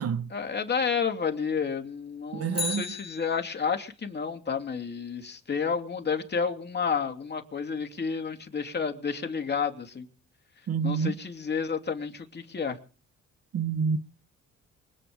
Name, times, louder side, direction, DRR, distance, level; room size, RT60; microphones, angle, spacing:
voice 1, 0.3-10.1 10.8-12.8, left 6 dB, 35° left, 2.7 m, -30 dB
voice 2, 2.3-2.8 10.7-11.2 13.5-14.0, right 6 dB, 50° right, 1.0 m, -28 dB
Bicycle, 2.5-3.9 12.2-12.3, left 4 dB, 20° left, 3.0 m, -35 dB
24.0 x 8.8 x 5.3 m
cardioid pair, 90°, 30 cm